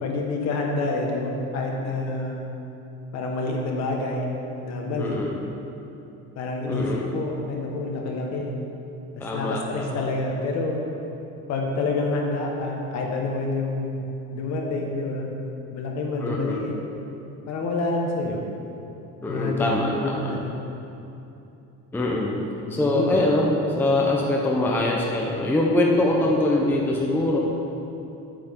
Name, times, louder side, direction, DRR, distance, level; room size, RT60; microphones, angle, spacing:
voice 1, 0.0-2.4 3.1-4.3 4.6-5.2 6.3-8.5 9.3-10.8 11.5-14.0 14.3-15.3 15.7-16.7 17.5-18.4 19.3-20.5 22.7-23.2, left 2 dB, 55° left, 0 dB, 1.5 m, -27 dB
voice 2, 4.9-5.5 6.6-7.1 9.2-10.0 16.2-16.7 19.2-20.3 21.9-22.3 22.7-27.4, left 1 dB, 5° left, -2 dB, 0.6 m, -23 dB
9.9 x 8.7 x 3.7 m, 2.9 s
cardioid pair, 160°, 31 cm